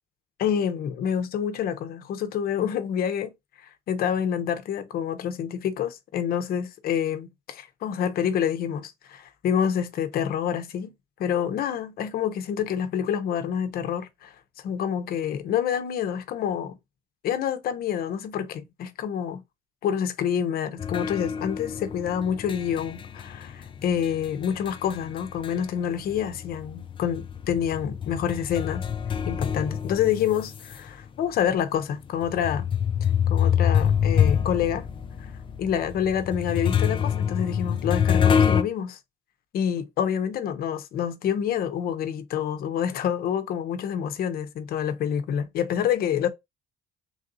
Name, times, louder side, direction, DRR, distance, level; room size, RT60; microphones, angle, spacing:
voice 1, 0.4-3.3 3.9-10.9 11.2-14.3 14.6-16.8 17.2-19.4 19.8-28.9 29.3-32.7 33.3-34.9 35.6-39.0 39.5-46.3, left 8 dB, 65° left, 0.7 m, -27 dB
sound 1, 20.8-25.8 26.1-30.8 31.4-31.5 32.2-38.6, left 8 dB, 30° left, 0.4 m, -25 dB
3.4 x 2.6 x 3.7 m
cardioid pair, 110°, 17 cm